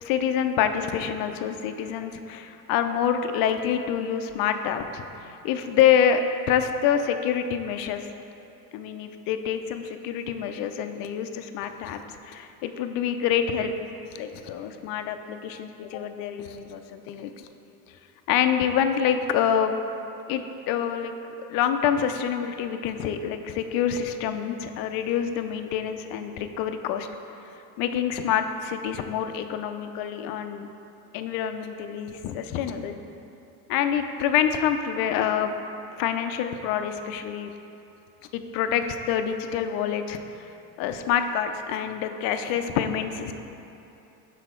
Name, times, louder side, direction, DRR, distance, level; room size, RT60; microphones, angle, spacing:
voice 1, 0.0-8.0 8.7-12.0 12.2-13.7 14.1-17.5 18.3-19.7 20.3-21.1 21.5-27.1 27.8-30.7 31.1-32.9 33.7-35.5 36.0-37.5 38.3-40.5 40.8-43.3, left 8 dB, 50° left, 8 dB, 0.4 m, -26 dB
6.1 x 4.1 x 4.4 m, 3.0 s
supercardioid pair, 105°, 50 cm